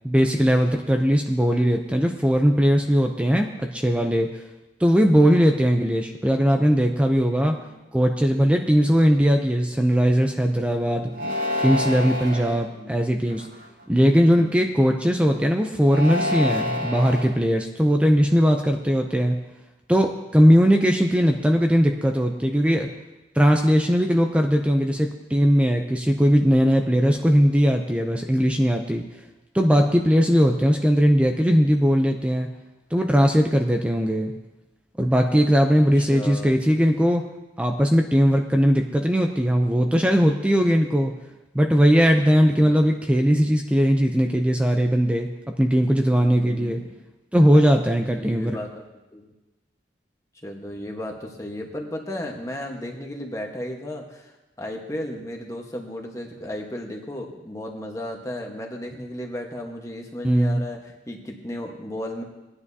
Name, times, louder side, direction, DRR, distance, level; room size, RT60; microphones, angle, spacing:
voice 1, 0.0-4.4 4.8-7.6 7.9-11.1 11.6-13.5 13.9-19.4 19.9-22.9 23.3-29.0 29.5-32.5 32.9-34.3 35.0-37.2 37.6-41.1 41.5-45.3 45.6-46.8 47.3-48.6 60.2-60.6, equal, 5° right, 3 dB, 0.5 m, -19 dB
voice 2, 11.1-11.4 12.7-13.0 14.3-14.5 27.0-27.3 36.1-36.5 46.2-47.0 48.1-48.8 49.1-49.3 50.4-54.3 54.6-60.8 61.1-62.2, left 1 dB, 15° left, 1 dB, 1.2 m, -35 dB
sound 1, 11.1-12.6 13.3-13.8 15.8-17.3, left 1 dB, 75° right, 4.9 m, -27 dB
19.0 x 9.7 x 2.7 m, 1.0 s
head